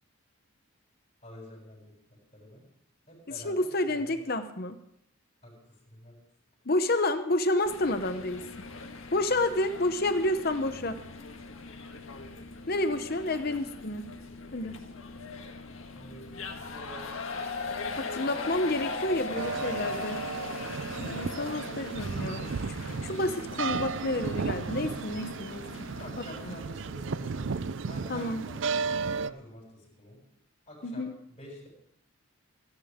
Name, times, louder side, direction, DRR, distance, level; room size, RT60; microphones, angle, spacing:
voice 1, 1.2-1.9 2.3-2.6 3.1-3.6 3.8-4.2 5.4-5.5 5.9-6.2 15.9-17.1 26.0-28.6 28.9-30.2 30.7-31.7, equal, 30° left, -2 dB, 6.9 m, -48 dB
voice 2, 3.4-4.8 6.6-8.7 9.1-11.0 12.7-14.1 14.5-14.8 18.0-20.2 21.0-25.9 26.2-26.5 28.1-28.5 30.8-31.1, left 1 dB, 45° left, 9 dB, 0.8 m, -30 dB
sound 1, 7.7-26.5, left 3 dB, 70° left, 1.7 m, -40 dB
sound 2, 19.3-29.3, right 5 dB, 60° right, 0.5 m, -34 dB
27.5 x 10.5 x 3.7 m, 0.69 s
head